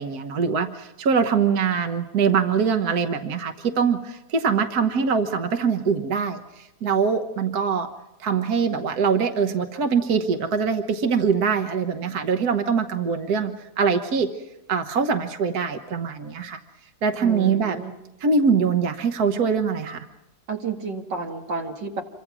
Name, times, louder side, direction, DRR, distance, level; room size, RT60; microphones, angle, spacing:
voice 1, 0.0-7.9 8.2-14.3 14.7-16.6 17.0-17.8 18.2-20.1, right 5 dB, 60° right, 7 dB, 1.6 m, -23 dB
voice 2, 17.2-17.9 20.5-22.0, right 4 dB, 80° right, 3 dB, 2.8 m, -31 dB
27.5 x 24.0 x 6.2 m, 0.97 s
omnidirectional pair, 1.9 m